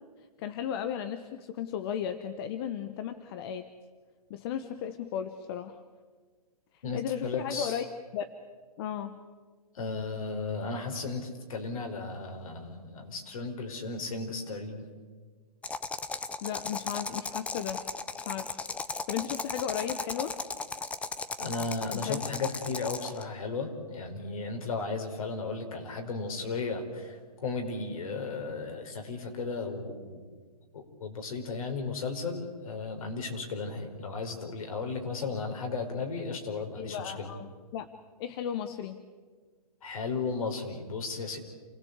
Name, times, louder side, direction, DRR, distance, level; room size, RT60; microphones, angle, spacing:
voice 1, 0.4-3.7 4.3-5.8 6.7-7.8 8.1-8.3 8.8-9.2 16.4-17.8 18.2-18.6 18.9-20.4 21.9-22.2 23.0-23.1 36.8-37.9 38.2-39.0, left 9 dB, 40° left, 9 dB, 1.2 m, -35 dB
voice 2, 6.8-7.8 9.7-14.8 21.4-30.2 30.7-37.3 39.8-41.4, left 4 dB, 60° left, 4 dB, 4.9 m, -35 dB
sound 1, 15.6-23.2, left 4 dB, 5° left, 0.6 m, -36 dB
28.0 x 17.0 x 8.2 m, 1.5 s
hypercardioid pair, 135°, 20 cm